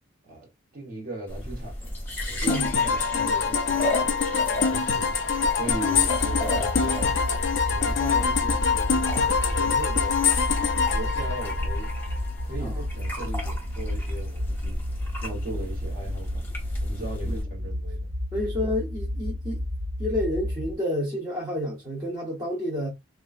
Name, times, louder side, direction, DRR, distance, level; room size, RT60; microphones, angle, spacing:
voice 1, 0.7-1.7 2.3-3.8 4.3-5.2 5.5-7.1 7.6-9.1 9.4-10.2 10.5-11.9 12.4-14.8 15.2-16.5 16.8-18.1, right 1 dB, 45° right, 1.1 m, -38 dB
sound 1, 1.3-17.4, equal, 10° left, 1.0 m, -34 dB
voice 2, 2.4-2.7 12.6-12.8 17.2-17.4 18.3-19.6 20.0-22.9, left 1 dB, 20° right, 0.7 m, -29 dB
sound 2, 2.5-12.2, left 6 dB, 65° left, 0.4 m, -25 dB
sound 3, 6.0-20.7, left 1 dB, 85° right, 0.6 m, -32 dB
3.6 x 2.3 x 2.4 m
head